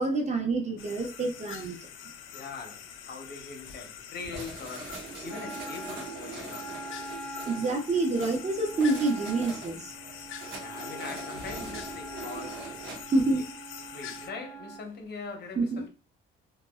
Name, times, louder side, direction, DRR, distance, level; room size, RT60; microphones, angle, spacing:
voice 1, 0.0-1.8 7.5-9.9 13.1-13.5 15.6-15.9, right 2 dB, 35° right, 0.8 m, -27 dB
sound 1, 0.8-14.3, left 8 dB, 80° left, 0.4 m, -45 dB
voice 2, 2.3-6.8 10.2-13.4 13.9-15.9, left 4 dB, 55° left, 0.8 m, -42 dB
sound 2, 4.2-13.0, right 3 dB, 85° right, 0.9 m, -43 dB
Wind instrument woodwind instrument, 5.3-14.9, right 1 dB, 5° left, 0.5 m, -44 dB
2.6 x 2.2 x 2.2 m
cardioid pair, 90°, 20 cm